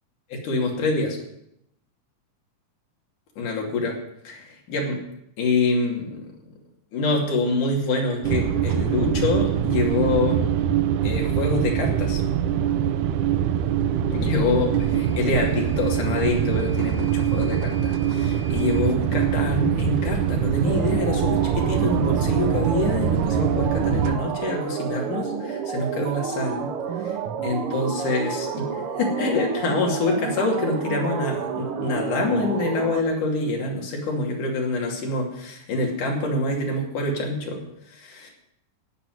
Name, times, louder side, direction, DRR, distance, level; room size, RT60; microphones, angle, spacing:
voice 1, 0.3-1.2 3.4-4.0 4.2-5.0 5.4-6.2 6.9-10.5 11.0-12.2 14.1-26.7 27.0-27.2 27.4-38.3, left 2 dB, 70° left, 0 dB, 4.1 m, -26 dB
sound 1, 8.2-24.2, right 9 dB, 75° right, 2.2 m, -23 dB
Microwave oven / Alarm, 14.8-18.9, equal, 55° left, 1.8 m, -46 dB
sound 2, 20.6-33.0, right 7 dB, 60° right, 1.6 m, -30 dB
17.0 x 5.9 x 9.4 m, 0.79 s
omnidirectional pair, 3.7 m